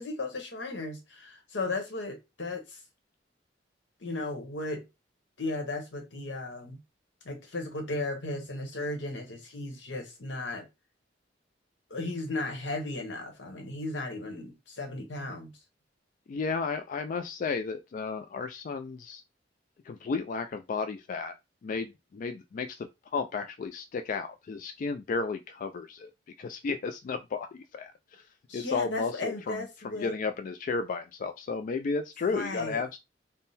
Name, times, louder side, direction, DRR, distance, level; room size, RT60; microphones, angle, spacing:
voice 1, 0.0-2.8 4.0-4.8 5.4-6.8 7.2-10.6 11.9-15.5 28.5-30.1 32.3-32.8, left 2 dB, 80° left, 1.1 m, -35 dB
voice 2, 16.3-19.2 19.8-21.3 21.6-26.1 26.4-28.3 28.5-33.0, left 4 dB, 45° left, 0.3 m, -33 dB
3.6 x 2.1 x 4.0 m
head